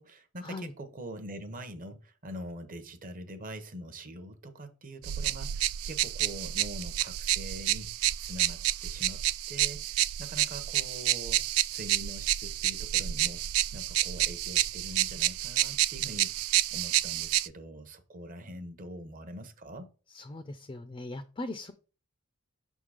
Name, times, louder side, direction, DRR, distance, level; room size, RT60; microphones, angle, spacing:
voice 1, 0.0-13.4 13.7-19.9, right 1 dB, 40° right, 0.8 m, -44 dB
sound 1, 5.0-17.5, right 14 dB, 75° right, 0.3 m, -29 dB
voice 2, 20.1-21.7, left 2 dB, 25° left, 0.4 m, -40 dB
6.0 x 3.7 x 4.8 m
head